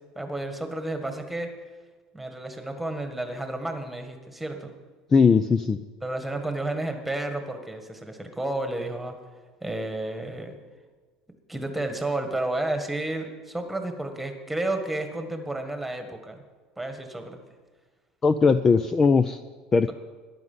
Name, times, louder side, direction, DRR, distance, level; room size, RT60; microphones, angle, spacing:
voice 1, 0.2-1.5 2.1-4.7 6.0-9.2 9.6-10.6 11.5-16.4 16.8-17.4, right 2 dB, 5° right, 6 dB, 1.7 m, -31 dB
voice 2, 5.1-5.8 18.2-19.4 19.7-19.9, left 5 dB, 20° left, 12 dB, 0.4 m, -19 dB
14.5 x 11.0 x 5.6 m, 1.4 s
cardioid pair, 130°, 2 cm